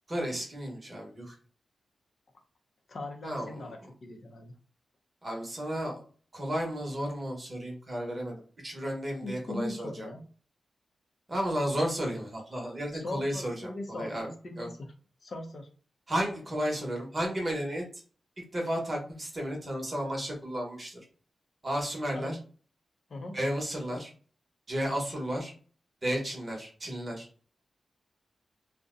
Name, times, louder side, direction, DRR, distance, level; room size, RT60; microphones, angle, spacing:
voice 1, 0.1-1.3 3.2-3.6 5.2-6.0 6.3-8.4 8.6-10.1 11.3-14.3 14.6-14.7 16.1-17.8 18.5-21.0 21.6-22.4 23.3-24.1 24.7-25.5 26.0-27.3, equal, 25° right, 0 dB, 0.9 m, -33 dB
voice 2, 2.9-4.5 9.2-10.2 12.9-14.9 15.2-15.7 22.1-22.4 23.1-23.4, left 2 dB, 50° left, 3 dB, 0.5 m, -39 dB
2.7 x 2.1 x 3.6 m, 0.41 s
wide cardioid pair, 155°, 0 cm